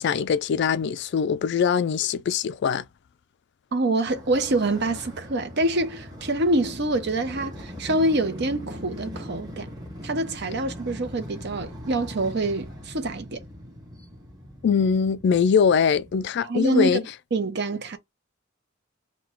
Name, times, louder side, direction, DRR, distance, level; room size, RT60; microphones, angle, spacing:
voice 1, 0.0-2.8 14.6-17.0, left 6 dB, 60° left, 0.3 m, -22 dB
voice 2, 3.7-9.7 10.0-13.4 16.4-17.0 17.3-18.0, right 2 dB, 55° right, 0.7 m, -25 dB
Motorcycle, 4.0-16.3, equal, 20° right, 1.3 m, -41 dB
3.8 x 2.3 x 4.4 m
head